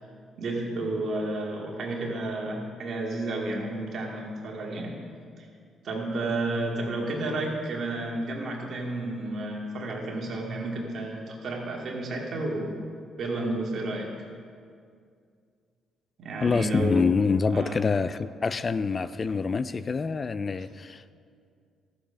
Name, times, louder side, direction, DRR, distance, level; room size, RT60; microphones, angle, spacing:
voice 1, 0.4-4.9 5.4-5.5 5.8-12.8 13.2-14.1 16.2-17.1 17.5-17.8, right 2 dB, 60° right, -1 dB, 2.2 m, -31 dB
voice 2, 16.4-21.1, left 5 dB, 35° left, 14 dB, 0.3 m, -26 dB
13.0 x 7.0 x 5.6 m, 2.3 s
cardioid pair, 90°, 0 cm